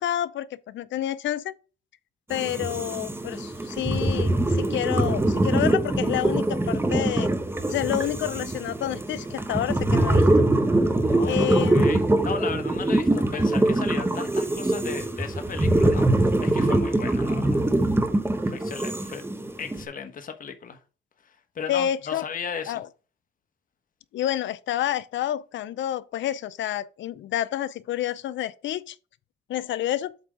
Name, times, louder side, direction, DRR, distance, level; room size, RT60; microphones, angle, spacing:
voice 1, 0.0-1.5 2.3-7.3 7.7-10.5 11.2-12.0 21.7-22.2 22.7-22.9 24.1-29.0 29.5-30.1, left 11 dB, 70° left, 0.6 m, -29 dB
sound 1, 2.3-19.8, right 1 dB, 10° right, 1.1 m, -23 dB
voice 2, 11.0-11.4 11.7-17.6 18.4-19.2 19.6-20.8 21.2-22.8, left 6 dB, 45° left, 1.2 m, -36 dB
8.2 x 3.5 x 5.1 m
cardioid pair, 90°, 20 cm